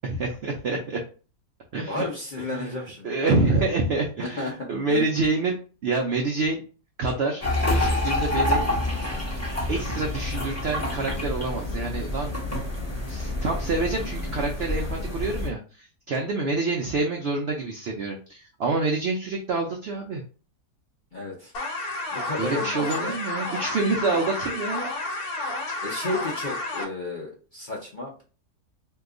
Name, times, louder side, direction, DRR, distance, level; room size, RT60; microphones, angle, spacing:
voice 1, 0.0-1.0 1.7-2.1 2.4-2.8 3.0-5.6 5.8-6.6 7.0-7.4 7.7-8.7 9.7-12.3 13.1-20.2 22.4-24.9, right 3 dB, 80° right, 2 dB, 0.5 m, -27 dB
voice 2, 1.9-3.6 4.2-5.2 21.1-21.5 22.1-23.2 25.8-28.2, left 2 dB, 50° left, -3 dB, 0.6 m, -33 dB
sound 1, 7.4-15.5, left 1 dB, 15° left, 0.7 m, -27 dB
sound 2, 21.5-26.8, left 2 dB, 75° left, 1.2 m, -31 dB
2.8 x 2.3 x 3.6 m, 0.37 s
omnidirectional pair, 1.7 m